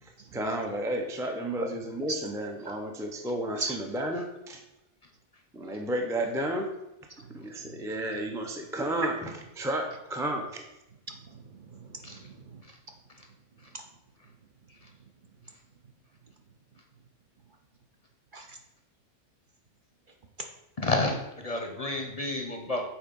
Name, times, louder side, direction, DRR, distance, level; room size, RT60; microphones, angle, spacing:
voice 1, 0.0-4.6 5.5-6.7 7.3-10.6, right 1 dB, 5° right, 2 dB, 0.5 m, -32 dB
voice 2, 7.2-7.7 11.1-12.6 18.3-18.6 21.9-22.1, right 3 dB, 50° right, 3 dB, 0.8 m, -41 dB
voice 3, 20.8-22.8, left 2 dB, 35° left, 3 dB, 0.7 m, -30 dB
7.3 x 4.2 x 5.3 m, 0.92 s
omnidirectional pair, 1.2 m